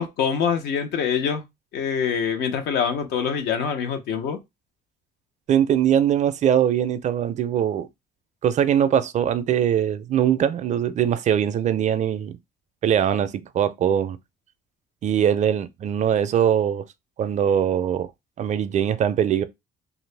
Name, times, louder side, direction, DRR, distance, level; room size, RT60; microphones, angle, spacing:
voice 1, 0.0-1.4 1.7-4.4, left 7 dB, 80° left, 0.8 m, -25 dB
voice 2, 5.5-7.9 8.4-12.3 12.8-14.2 15.0-16.8 17.2-18.1 18.4-19.4, right 9 dB, 45° right, 0.4 m, -21 dB
2.8 x 2.5 x 3.2 m
cardioid pair, 110°, 17 cm